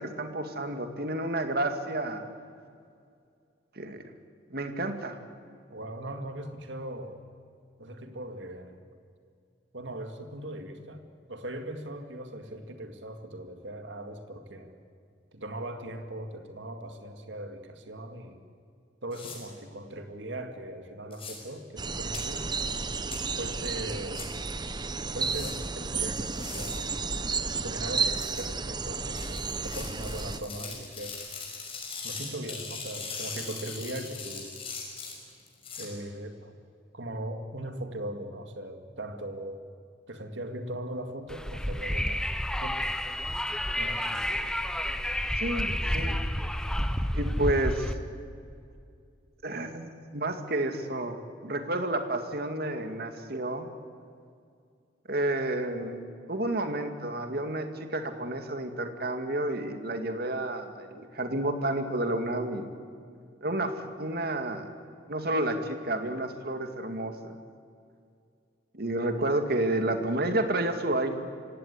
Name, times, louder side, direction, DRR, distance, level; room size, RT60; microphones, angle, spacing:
voice 1, 0.0-2.2 3.8-4.0 4.5-5.2 45.4-46.2 47.1-47.9 49.4-51.2 51.4-53.7 55.1-62.7 63.4-64.7 65.1-67.4 68.7-71.1, right 1 dB, 55° right, 7 dB, 2.2 m, -30 dB
voice 2, 5.7-7.2 7.8-8.8 9.7-11.0 11.3-14.8 15.3-18.4 19.0-22.5 23.4-24.3 25.1-26.9 27.5-31.2 32.0-34.5 35.8-36.6 36.9-39.6 40.1-42.3 42.6-43.2 43.5-44.5 52.7-53.0, right 1 dB, 85° right, 6 dB, 2.2 m, -39 dB
sound 1, 19.1-19.4 21.1-21.3 22.1-22.2 23.1-23.2 24.1-24.3 25.2-25.5 26.2-26.8 28.1-28.4 29.2-35.9, left 5 dB, 30° left, 5.9 m, -40 dB
sound 2, 21.8-30.4, right 4 dB, 25° right, 0.9 m, -32 dB
Wind, 41.3-47.9, equal, 5° left, 0.9 m, -30 dB
26.0 x 17.0 x 9.6 m, 2.3 s
head